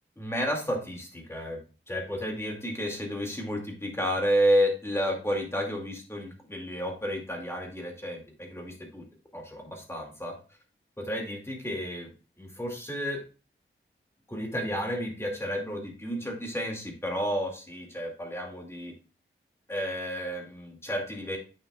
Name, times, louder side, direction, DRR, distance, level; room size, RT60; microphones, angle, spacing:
voice 1, 0.2-1.6 1.9-9.0 9.3-10.4 11.0-12.1 12.4-13.2 14.3-18.9 19.7-21.4, equal, 10° left, 1 dB, 2.2 m, -31 dB
8.7 x 6.2 x 2.3 m, 0.34 s
wide cardioid pair, 85°, 21 cm